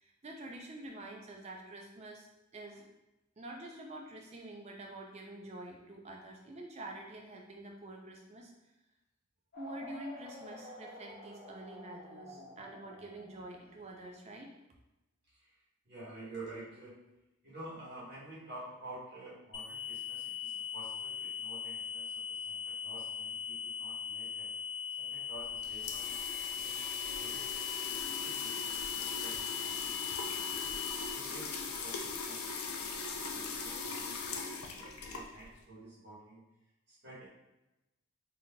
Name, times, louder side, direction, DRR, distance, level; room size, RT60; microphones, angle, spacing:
voice 1, 0.0-2.3 2.5-2.8 3.4-8.5 9.6-14.5, right 1 dB, 30° right, 1 dB, 0.4 m, -47 dB
sound 1, 9.5-14.1, left 1 dB, 45° left, 0.9 m, -50 dB
voice 2, 15.8-17.0 17.4-24.5 25.0-26.1 26.4-27.5 28.0-30.7 31.1-36.4 36.9-37.3, right 2 dB, 50° right, -8 dB, 1.3 m, -50 dB
sound 2, 19.5-31.0, left 8 dB, 65° left, 1.1 m, -40 dB
sound 3, 25.3-35.6, left 4 dB, 80° left, 0.4 m, -40 dB
3.7 x 2.8 x 2.3 m, 0.96 s
head